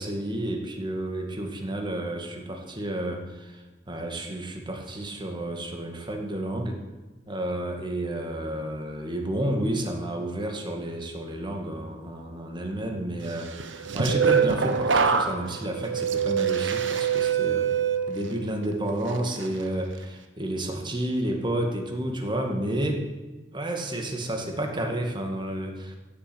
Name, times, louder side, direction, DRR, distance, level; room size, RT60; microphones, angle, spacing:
voice 1, 0.0-6.8 7.3-17.8 18.1-23.0 23.5-26.0, right 1 dB, 25° right, 3 dB, 2.1 m, -31 dB
sound 1, 13.6-18.6 19.1-19.5, right 6 dB, 75° right, 1.1 m, -25 dB
15.5 x 7.6 x 8.0 m, 1.2 s
head